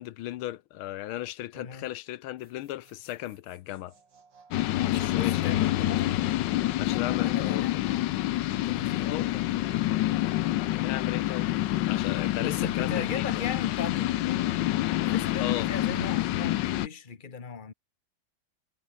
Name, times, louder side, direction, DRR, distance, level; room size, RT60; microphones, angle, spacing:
voice 1, 0.0-3.9 4.9-5.6 6.8-7.8 9.0-9.3 10.7-11.5 11.9-13.4 15.4-15.7, left 14 dB, 90° left, 1.6 m, -36 dB
voice 2, 1.5-1.9 4.7-6.2 7.2-7.7 8.5-9.4 12.3-14.7 15.0-17.7, left 6 dB, 25° left, 1.5 m, -38 dB
sound 1, 2.4-8.7, right 5 dB, 60° right, 3.6 m, -57 dB
sound 2, 4.5-16.9, left 15 dB, 75° left, 1.2 m, -27 dB
omnidirectional pair, 2.2 m